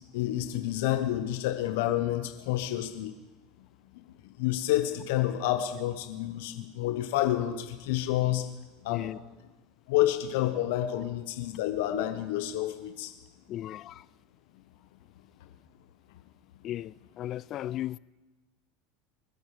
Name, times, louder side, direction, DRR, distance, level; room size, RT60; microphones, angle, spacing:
voice 1, 0.1-3.1 4.4-8.4 8.8-9.1 9.9-13.1, left 13 dB, 70° left, 1.1 m, -29 dB
voice 2, 13.5-14.0 16.6-18.0, left 12 dB, 45° left, 0.3 m, -36 dB
25.0 x 8.6 x 3.4 m
hypercardioid pair, 95°, 0 cm